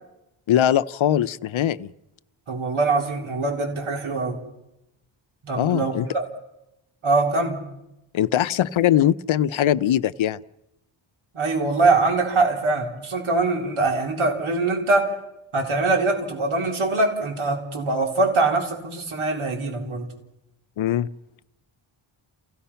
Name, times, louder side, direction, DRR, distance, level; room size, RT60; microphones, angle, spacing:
voice 1, 0.5-1.9 5.6-6.1 8.1-10.4 20.8-21.1, left 11 dB, 70° left, 14 dB, 0.7 m, -21 dB
voice 2, 2.5-4.4 5.4-6.2 7.0-7.6 11.3-15.1 15.5-20.1, right 3 dB, 75° right, 2 dB, 4.1 m, -23 dB
29.5 x 16.5 x 5.7 m, 0.88 s
wide cardioid pair, 110°, 49 cm